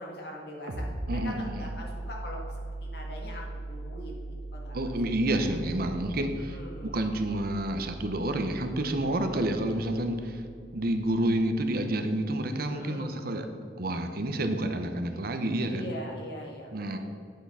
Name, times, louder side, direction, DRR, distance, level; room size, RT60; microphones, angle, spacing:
voice 1, 0.0-2.4 2.8-5.0 5.3-5.6 6.3-7.0 12.7-13.1 15.7-17.0, equal, 65° left, -1 dB, 1.8 m, -42 dB
sound 1, 0.7-12.0, right 2 dB, 75° right, 1.1 m, -40 dB
voice 2, 1.1-1.7 4.7-10.4 10.7-13.5 13.8-15.9 16.7-17.0, right 1 dB, 55° right, 7 dB, 0.8 m, -29 dB
8.6 x 5.9 x 5.6 m, 2.4 s
head